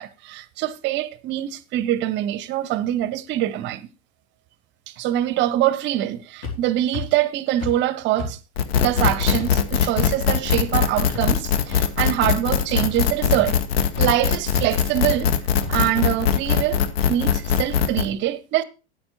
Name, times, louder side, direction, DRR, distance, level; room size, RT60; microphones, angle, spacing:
voice 1, 0.0-3.9 5.0-8.4 8.8-13.6 14.0-15.3 15.7-16.8 17.1-18.6, right 13 dB, 35° right, 0.7 m, -24 dB
sound 1, 6.4-6.5 6.9-7.0 7.6-7.7 8.2-8.3 8.8-8.9 9.4-9.5 10.0-10.1 10.6-10.7 11.1-11.2 11.7-11.8 12.2-12.5 12.8-12.9 13.4-13.5 14.0-14.1 14.5-14.7 15.1-15.2 15.6-15.7, left 3 dB, 45° left, 3.5 m, -30 dB
sound 2, 8.6-18.1, left 7 dB, 65° left, 1.1 m, -21 dB
8.7 x 8.6 x 4.4 m
figure-of-eight pair, 85°, 32 cm